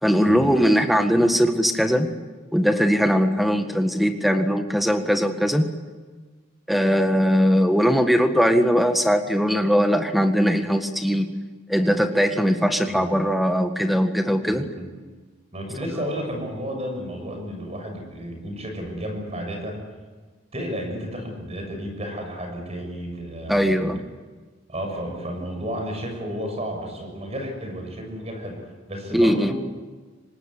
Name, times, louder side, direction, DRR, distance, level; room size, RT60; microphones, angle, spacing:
voice 1, 0.0-2.1 2.5-5.7 6.7-11.3 11.7-14.7 23.5-24.0 29.1-29.5, equal, ahead, 6 dB, 1.8 m, -20 dB
voice 2, 14.4-14.9 15.5-19.8 20.5-24.0 24.7-29.6, equal, 35° right, 3 dB, 6.6 m, -32 dB
26.0 x 19.5 x 9.7 m, 1.4 s
head